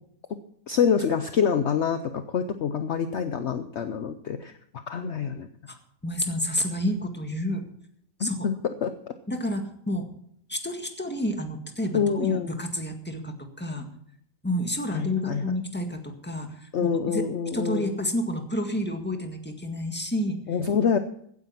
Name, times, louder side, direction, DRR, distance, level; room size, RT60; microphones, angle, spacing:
voice 1, 0.7-4.5 4.9-5.5 8.2-8.9 11.9-12.5 14.9-15.5 16.7-18.0 20.5-21.0, left 7 dB, 55° left, 9 dB, 0.9 m, -26 dB
voice 2, 6.0-7.6 8.2-8.5 9.3-10.1 10.5-13.9 14.4-17.2 17.5-20.4, left 1 dB, 5° left, 5 dB, 1.7 m, -30 dB
16.0 x 9.6 x 5.8 m, 0.69 s
omnidirectional pair, 1.6 m